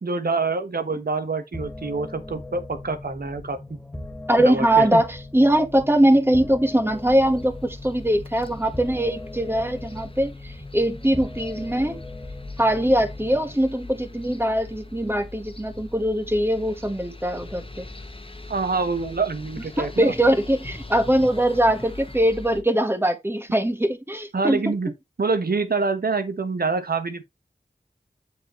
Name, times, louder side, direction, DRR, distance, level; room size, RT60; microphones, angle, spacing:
voice 1, 0.0-3.6 4.4-5.0 18.5-20.1 24.3-24.9 25.2-27.2, right 4 dB, 70° right, 1.4 m, -26 dB
sound 1, 1.5-13.5, left 2 dB, 5° left, 2.5 m, -39 dB
voice 2, 4.3-12.0 12.6-17.9 19.8-24.6, right 1 dB, 15° right, 1.6 m, -21 dB
sound 2, 6.9-22.6, left 2 dB, 35° left, 1.6 m, -41 dB
7.6 x 6.6 x 3.2 m
wide cardioid pair, 50°, 16 cm